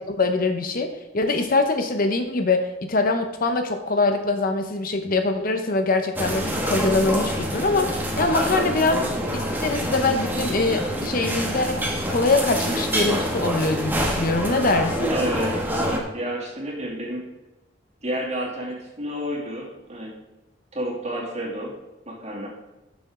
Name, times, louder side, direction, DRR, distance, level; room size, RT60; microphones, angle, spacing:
voice 1, 0.1-9.1 9.3-11.8 12.1-15.1, left 3 dB, 45° left, 6 dB, 0.8 m, -23 dB
sound 1, 6.2-16.0, equal, 10° right, 1.3 m, -26 dB
voice 2, 15.1-17.3 18.0-20.1 20.7-21.7 22.1-22.5, right 1 dB, 35° right, -3 dB, 2.6 m, -30 dB
12.5 x 6.9 x 3.7 m, 1.0 s
head